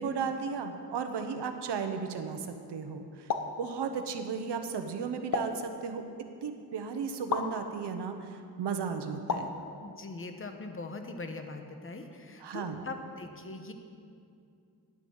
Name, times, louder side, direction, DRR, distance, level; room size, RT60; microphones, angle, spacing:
voice 1, 0.0-3.3 3.6-6.0 6.4-9.5 12.4-12.9, right 6 dB, 90° right, 6 dB, 1.1 m, -35 dB
sound 1, 3.3-3.6 5.3-5.7 7.3-7.5 9.3-9.6, left 5 dB, 55° left, 1.0 m, -31 dB
voice 2, 9.8-13.7, left 3 dB, 30° left, 6 dB, 1.2 m, -41 dB
10.0 x 10.0 x 7.1 m, 2.5 s
wide cardioid pair, 110°, 40 cm